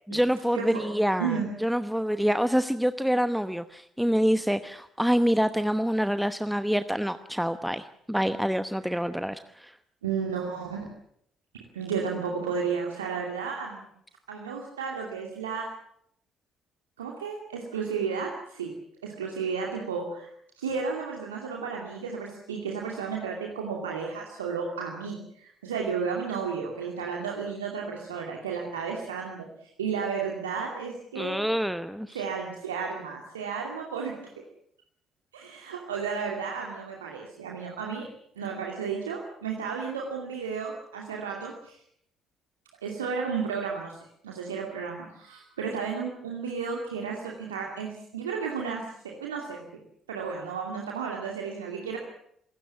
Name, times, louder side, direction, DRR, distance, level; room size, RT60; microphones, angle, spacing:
voice 1, 0.1-9.7 31.1-32.2, equal, ahead, 11 dB, 1.0 m, -26 dB
voice 2, 10.0-10.9 11.7-13.9 14.3-15.7 17.0-18.7 19.0-20.3 20.5-29.5 29.8-31.4 32.1-34.2 35.3-38.1 38.4-41.8 42.8-49.6 50.1-52.0, right 6 dB, 80° right, 0 dB, 2.5 m, -33 dB
27.5 x 16.5 x 7.2 m, 0.70 s
figure-of-eight pair, 50°, 0 cm